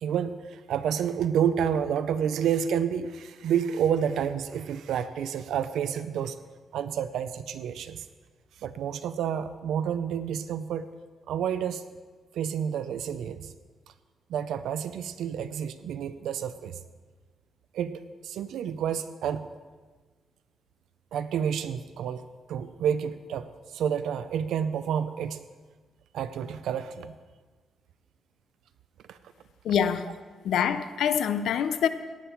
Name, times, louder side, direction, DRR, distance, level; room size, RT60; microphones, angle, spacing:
voice 1, 0.0-6.4 6.7-8.0 8.6-10.9 11.3-11.8 12.3-13.5 14.3-16.8 17.7-19.5 21.1-25.4 26.1-27.1 29.1-29.2, right 8 dB, 90° right, 0.5 m, -29 dB
voice 2, 29.6-30.1 30.4-31.9, left 8 dB, 75° left, 0.6 m, -25 dB
17.0 x 8.7 x 4.5 m
cardioid pair, 160°, 0 cm